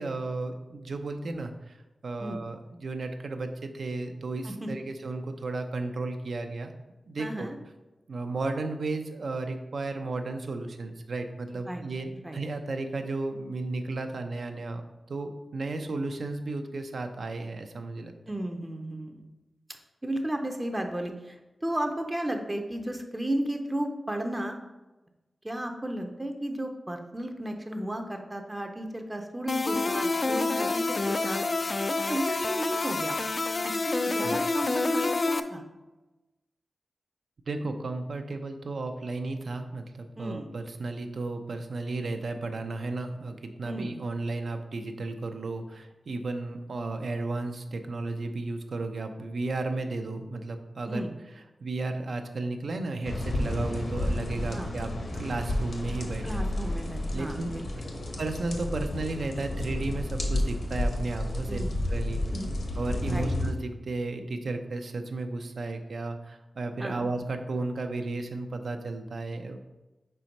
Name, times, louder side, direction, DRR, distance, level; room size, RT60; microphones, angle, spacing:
voice 1, 0.0-1.8 2.0-6.7 7.1-7.5 8.1-14.8 15.1-18.1 34.2-34.4 37.5-51.0 51.6-56.5 57.1-57.6 58.2-62.2 62.8-69.6, right 3 dB, 70° right, 6 dB, 0.5 m, -34 dB
voice 2, 7.2-7.5 11.7-11.8 12.2-12.4 18.3-19.2 20.0-24.6 25.4-33.2 33.6-35.6 40.2-40.5 43.6-43.9 50.9-51.1 54.5-54.7 56.2-57.7 61.5-61.7 62.3-62.5 63.0-63.3 66.8-67.0, right 1 dB, 15° right, 4 dB, 0.6 m, -34 dB
sound 1, 29.5-35.4, left 3 dB, 40° left, 0.3 m, -28 dB
sound 2, 53.0-63.5, left 1 dB, 60° left, 0.9 m, -31 dB
4.4 x 4.2 x 5.2 m, 1.1 s
wide cardioid pair, 120°, 0 cm